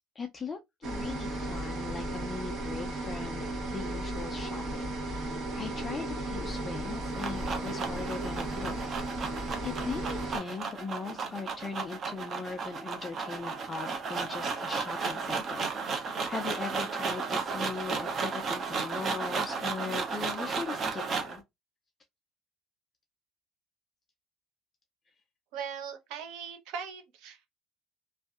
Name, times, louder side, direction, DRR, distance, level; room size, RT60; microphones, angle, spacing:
voice 1, 0.2-8.8 9.1-9.4 9.6-21.4, left 4 dB, 25° left, 0.3 m, -40 dB
sound 1, 0.8-10.4, right 1 dB, 55° right, 1.0 m, -35 dB
sound 2, 6.8-21.4, right 5 dB, 35° right, 0.6 m, -34 dB
voice 2, 25.5-27.5, right 7 dB, 75° right, 0.7 m, -40 dB
2.6 x 2.3 x 2.3 m
cardioid pair, 140°, 0 cm